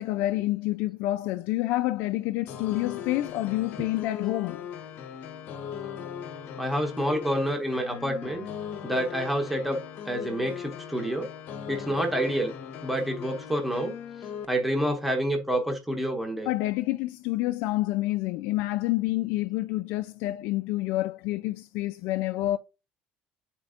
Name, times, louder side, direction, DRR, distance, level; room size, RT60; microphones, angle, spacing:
voice 1, 0.0-4.6 16.5-22.6, left 17 dB, 70° left, 0.4 m, -28 dB
sound 1, 2.5-14.5, left 8 dB, 50° left, 0.8 m, -39 dB
voice 2, 6.6-8.4 8.8-9.8 10.0-11.3 11.7-12.5 12.8-13.9 14.5-16.5, equal, 5° right, 1.0 m, -28 dB
8.9 x 4.3 x 2.5 m
cardioid pair, 145°, 4 cm